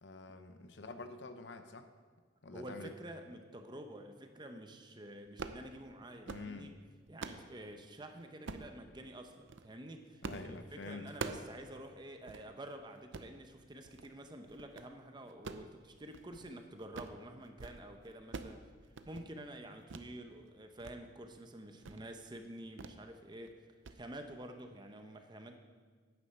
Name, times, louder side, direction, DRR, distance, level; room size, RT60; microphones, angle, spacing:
voice 1, 0.0-1.9 2.4-2.9 6.3-6.7 10.2-11.4, left 3 dB, 65° left, 9 dB, 0.8 m, -47 dB
voice 2, 2.5-6.7 7.1-18.6 19.1-23.6 23.9-25.6, right 1 dB, 25° right, 6 dB, 0.7 m, -49 dB
sound 1, 5.3-5.6 6.1-6.5 6.9-7.5 8.5-8.7 9.3-9.7 10.2-10.5 10.8-11.5 11.9-12.0 12.3-12.4 13.0-13.3 13.8-14.1 14.5-14.9 15.3-16.5 16.8-17.2 17.5-17.8 18.0-18.6 18.9-19.3 19.9-20.1 20.5-21.0 21.3-21.4 21.8-22.1 22.8-23.0 23.3-23.5 23.8-24.0, right 4 dB, 75° right, 0.6 m, -45 dB
9.5 x 9.5 x 5.7 m, 1.5 s
head